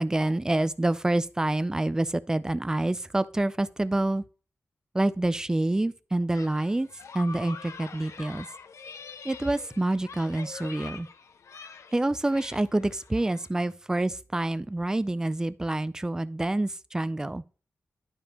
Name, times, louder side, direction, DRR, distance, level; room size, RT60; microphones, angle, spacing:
voice 1, 0.0-4.2 4.9-6.9 7.1-8.5 9.2-11.1 11.9-17.4, right 2 dB, 10° right, 0.3 m, -27 dB
sound 1, 6.3-13.5, left 5 dB, 70° left, 0.6 m, -45 dB
11.5 x 5.1 x 2.9 m
wide cardioid pair, 170°, 5 cm